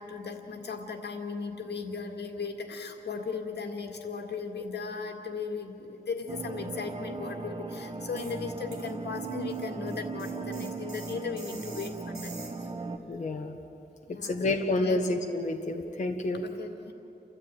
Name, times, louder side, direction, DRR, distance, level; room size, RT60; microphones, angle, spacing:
voice 1, 0.0-12.3 14.1-15.0 16.4-16.9, left 5 dB, 85° left, 3 dB, 2.0 m, -37 dB
sound 1, 6.3-13.0, right 4 dB, 30° right, 1.1 m, -37 dB
sound 2, 8.2-8.4 8.7-12.7, right 3 dB, 65° right, 3.9 m, -48 dB
voice 2, 13.1-13.6 14.2-16.4, left 2 dB, 45° left, 2 dB, 1.3 m, -29 dB
30.0 x 13.5 x 9.0 m, 2.9 s
wide cardioid pair, 160°, 17 cm